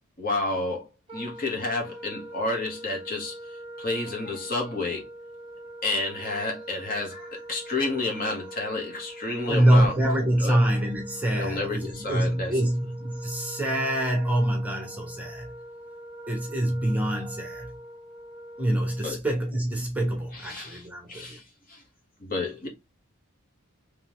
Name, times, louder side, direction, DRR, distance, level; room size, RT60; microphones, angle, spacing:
voice 1, 0.2-0.9 1.1-3.4 3.8-5.1 5.8-9.9 10.4-10.6 11.3-12.5 19.0-19.2 20.3-21.4 21.7-21.8 22.2-22.7, left 2 dB, 45° left, 1.4 m, -30 dB
Wind instrument woodwind instrument, 1.1-19.2, right 1 dB, 25° right, 1.6 m, -43 dB
voice 2, 9.5-15.5 16.3-17.7 18.6-21.4, right 1 dB, 5° right, 1.1 m, -25 dB
3.7 x 3.2 x 3.1 m
head